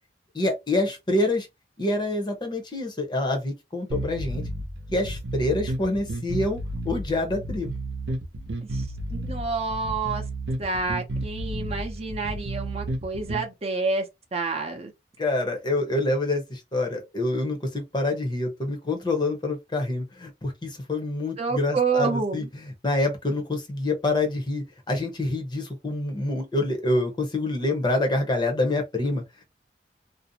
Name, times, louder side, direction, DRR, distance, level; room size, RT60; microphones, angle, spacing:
voice 1, 0.3-1.5 1.8-4.4 4.9-7.8 15.2-29.2, left 2 dB, 25° left, 0.7 m, -26 dB
sound 1, 3.9-13.5, right 1 dB, 70° right, 0.7 m, -32 dB
voice 2, 9.1-10.2 10.6-14.9 21.4-22.5, right 4 dB, 35° right, 0.6 m, -28 dB
2.6 x 2.0 x 2.7 m
head